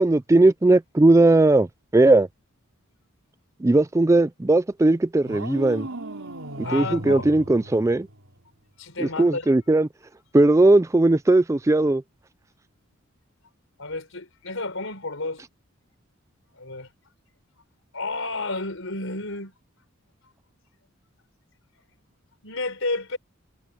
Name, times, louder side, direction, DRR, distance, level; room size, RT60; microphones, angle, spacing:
voice 1, 0.0-1.7 1.9-2.3 3.6-5.9 6.7-8.1 9.0-9.9 10.3-12.0, right 2 dB, 15° right, 0.4 m, -18 dB
sound 1, 5.2-8.4, right 1 dB, 75° right, 4.2 m, -36 dB
voice 2, 6.6-7.3 8.8-9.5 13.8-15.4 16.5-16.9 17.9-19.5 22.4-23.2, left 3 dB, 70° left, 4.8 m, -31 dB
head